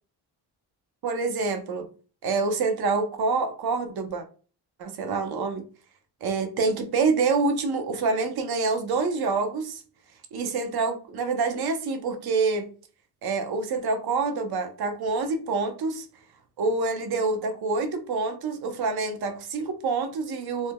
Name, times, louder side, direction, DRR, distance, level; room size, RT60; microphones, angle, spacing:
voice 1, 1.0-1.9 2.2-4.2 4.8-5.6 6.2-9.8 10.3-12.7 13.2-16.1 16.6-20.7, right 4 dB, 65° right, 0.8 m, -26 dB
2.6 x 2.2 x 3.4 m
cardioid pair, 100°, 41 cm